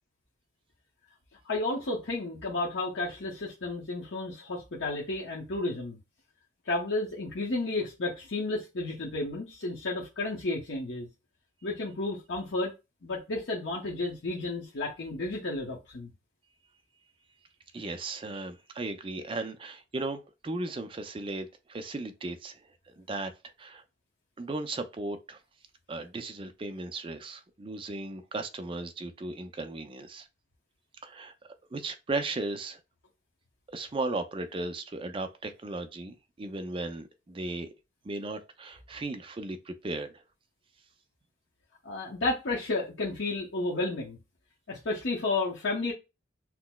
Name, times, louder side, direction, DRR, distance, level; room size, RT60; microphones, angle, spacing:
voice 1, 1.4-6.0 6.7-11.1 11.6-12.7 13.0-16.1 41.8-44.2 44.7-45.9, left 2 dB, 75° left, 0.8 m, -32 dB
voice 2, 17.7-22.6 22.9-23.3 23.6-23.8 24.4-25.4 25.9-30.3 31.0-31.3 31.7-32.8 33.7-37.7 38.0-40.2, right 2 dB, 25° right, 0.4 m, -36 dB
5.8 x 2.0 x 2.2 m
head